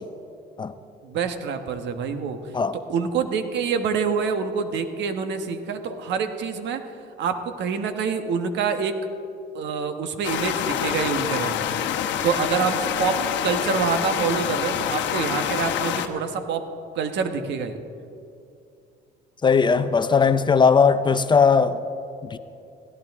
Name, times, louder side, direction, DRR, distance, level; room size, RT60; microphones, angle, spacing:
voice 1, 1.0-2.4 2.9-6.8 7.2-9.0 9.5-16.7 16.9-17.8, right 6 dB, 70° right, 1.3 m, -26 dB
sound 1, 10.2-16.1, left 9 dB, 75° left, 1.0 m, -26 dB
voice 2, 19.4-21.8 22.3-22.4, left 5 dB, 25° left, 0.5 m, -18 dB
18.5 x 16.0 x 3.6 m
cardioid pair, 115°, 19 cm